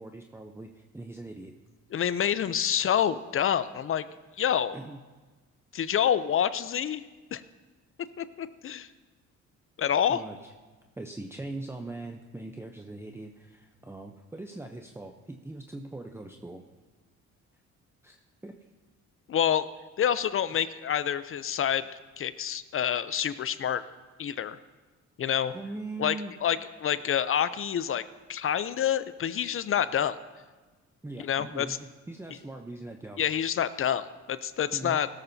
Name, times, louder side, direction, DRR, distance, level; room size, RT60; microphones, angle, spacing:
voice 1, 0.0-1.5 4.7-5.0 10.1-10.5 11.0-16.6 18.0-18.5 25.5-26.3 31.0-33.2 34.7-35.0, right 2 dB, 10° right, 3 dB, 0.7 m, -41 dB
voice 2, 1.9-4.0 4.4-4.8 5.7-7.0 7.3-7.4 8.2-8.9 9.8-10.2 19.3-19.7 20.0-21.9 22.2-23.8 24.2-24.6 25.2-25.5 26.0-26.2 26.4-28.0 28.3-30.2 31.2-31.8 33.2-35.1, left 9 dB, 45° left, 14 dB, 0.5 m, -27 dB
16.5 x 13.0 x 2.7 m, 1.3 s
cardioid pair, 90°, 30 cm